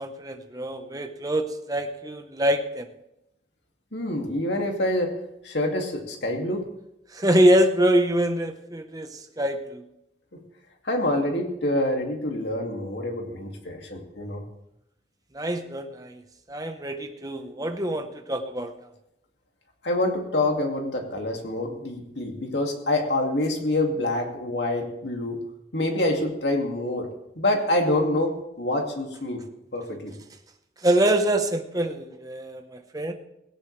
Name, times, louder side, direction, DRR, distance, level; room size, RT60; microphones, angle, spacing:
voice 1, 0.0-2.9 7.1-9.8 15.3-16.2 16.5-18.7 30.8-33.1, right 1 dB, 20° right, 5 dB, 1.1 m, -24 dB
voice 2, 3.9-5.1 5.4-6.6 10.8-14.4 19.8-25.4 25.7-27.1 27.4-29.4 29.7-30.1, left 1 dB, 70° left, 2 dB, 2.5 m, -26 dB
17.5 x 17.0 x 3.4 m, 0.84 s
head